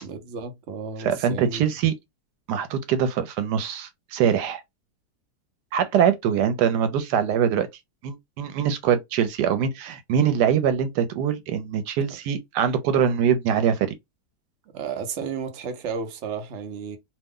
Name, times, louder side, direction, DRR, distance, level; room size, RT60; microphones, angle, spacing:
voice 1, 0.0-1.7 14.7-17.0, right 6 dB, 55° right, 0.8 m, -33 dB
voice 2, 1.0-1.9 2.5-4.6 5.7-7.7 8.0-13.9, right 8 dB, 80° right, 1.2 m, -23 dB
2.8 x 2.1 x 3.6 m
omnidirectional pair, 1.8 m